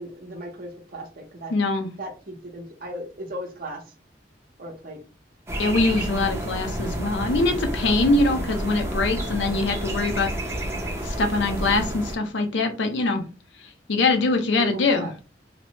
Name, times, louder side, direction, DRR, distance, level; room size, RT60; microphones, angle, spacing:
voice 1, 0.0-1.5 2.0-3.8 4.6-5.0 14.6-15.1, right 1 dB, 55° right, 2 dB, 0.7 m, -36 dB
voice 2, 1.5-1.9 5.6-10.3 11.0-13.2 13.9-15.1, left 3 dB, 80° left, 6 dB, 0.6 m, -23 dB
sound 1, 5.5-12.2, right 1 dB, 15° right, 0.6 m, -29 dB
2.9 x 2.1 x 2.8 m, 0.34 s
head